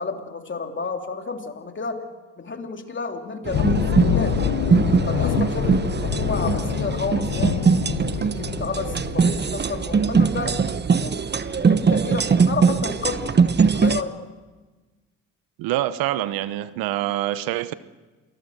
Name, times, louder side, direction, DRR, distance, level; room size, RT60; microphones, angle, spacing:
voice 1, 0.0-2.0 2.4-4.5 5.1-7.7 8.0-10.6 11.0-14.2, left 4 dB, 35° left, 4 dB, 3.3 m, -31 dB
sound 1, 3.5-9.4, left 12 dB, 60° left, 0.9 m, -26 dB
sound 2, 3.5-14.0, right 5 dB, 30° right, 1.0 m, -21 dB
voice 2, 15.6-17.7, right 14 dB, 80° right, 15 dB, 1.0 m, -25 dB
27.5 x 20.0 x 6.7 m, 1.2 s
supercardioid pair, 60°, 35 cm